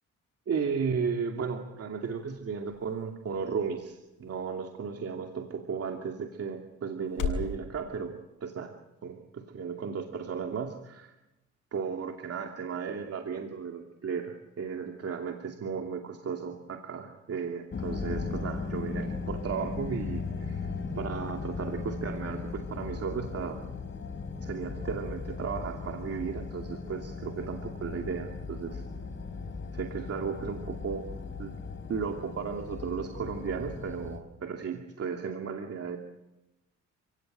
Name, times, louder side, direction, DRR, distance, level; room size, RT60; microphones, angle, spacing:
voice 1, 0.5-8.7 9.0-11.1 11.7-20.7 21.0-23.6 24.4-28.8 29.7-31.0 31.4-31.6 31.9-36.0, right 6 dB, 50° right, 3 dB, 2.7 m, -35 dB
sound 1, 1.3-7.6, left 6 dB, 85° left, 7.1 m, -41 dB
sound 2, 17.7-34.2, left 4 dB, 40° left, 4.6 m, -37 dB
30.0 x 17.5 x 9.1 m, 0.97 s
cardioid pair, 90°, 30 cm